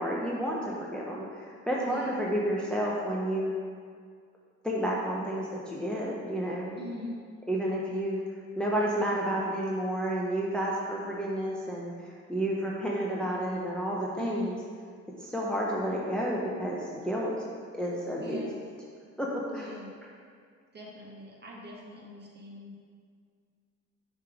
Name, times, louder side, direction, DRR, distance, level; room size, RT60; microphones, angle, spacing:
voice 1, 0.0-3.5 4.6-6.8 7.5-8.2 8.6-14.5 15.2-17.3 17.7-18.5 19.2-19.7, equal, 5° left, -4 dB, 0.7 m, -31 dB
voice 2, 1.8-2.1 6.8-7.2 14.1-14.6 18.2-18.6 19.5-19.9 20.7-22.8, left 1 dB, 35° right, -2 dB, 1.4 m, -41 dB
6.5 x 3.3 x 4.9 m, 2.1 s
cardioid pair, 90°, 30 cm